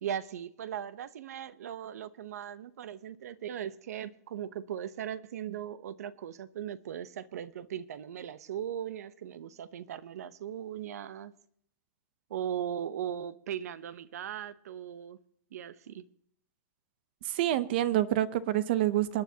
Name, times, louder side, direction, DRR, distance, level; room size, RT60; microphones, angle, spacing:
voice 1, 0.0-11.3 12.3-15.2 15.5-16.0, right 9 dB, 80° right, 0.8 m, -38 dB
voice 2, 17.2-19.2, right 13 dB, 40° right, 0.7 m, -27 dB
28.0 x 9.7 x 2.8 m
supercardioid pair, 175°, 8 cm